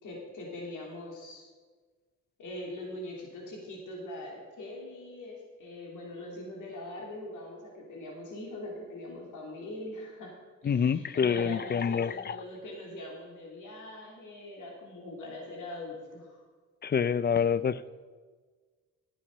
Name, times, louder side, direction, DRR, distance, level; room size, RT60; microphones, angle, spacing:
voice 1, 0.0-1.4 2.4-10.4 10.6-16.4, left 1 dB, 70° left, -1 dB, 3.3 m, -42 dB
voice 2, 10.6-12.4 16.8-17.9, left 7 dB, 30° left, 17 dB, 0.4 m, -27 dB
11.5 x 8.5 x 5.5 m, 1.5 s
supercardioid pair, 65°, 32 cm